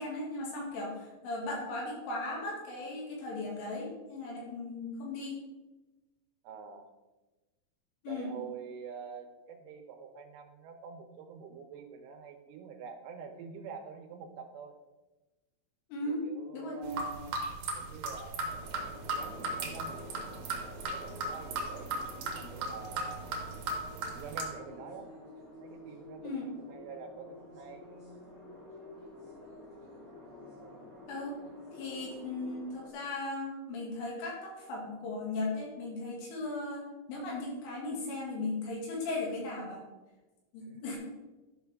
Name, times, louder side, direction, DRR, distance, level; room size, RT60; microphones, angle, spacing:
voice 1, 0.0-5.4 8.0-8.3 15.9-16.2 16.5-17.0 26.2-26.5 31.1-31.4 31.7-39.8 40.5-41.0, left 2 dB, 75° left, -3 dB, 4.6 m, -37 dB
voice 2, 6.4-6.9 8.1-14.8 16.0-17.4 17.8-18.5 19.1-20.1 20.9-21.9 22.3-23.3 24.2-25.1 25.6-27.8 40.6-41.0, right 6 dB, 80° right, 5 dB, 3.3 m, -46 dB
sound 1, 16.8-24.4, right 2 dB, 65° right, 2.4 m, -36 dB
sound 2, 18.4-32.9, left 1 dB, 40° left, 1.2 m, -49 dB
12.0 x 6.1 x 3.5 m, 1.1 s
omnidirectional pair, 5.8 m